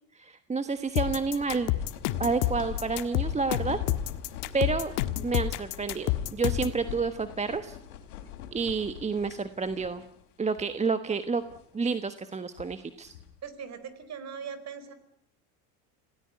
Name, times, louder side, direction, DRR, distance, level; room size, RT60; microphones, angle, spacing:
voice 1, 0.1-1.7 2.2-3.8 4.5-4.9 5.2-7.8 8.5-10.0 10.4-11.4 11.7-13.1, right 4 dB, 15° right, 10 dB, 1.2 m, -29 dB
sound 1, 0.8-10.3 10.5-10.7 11.3-11.8 12.3-13.4, left 10 dB, 85° left, 3.4 m, -42 dB
sound 2, 1.0-6.8, left 14 dB, 65° left, 1.7 m, -29 dB
voice 2, 13.4-14.9, right 7 dB, 40° right, 12 dB, 4.6 m, -40 dB
26.5 x 17.5 x 9.5 m, 0.70 s
supercardioid pair, 105°, 42 cm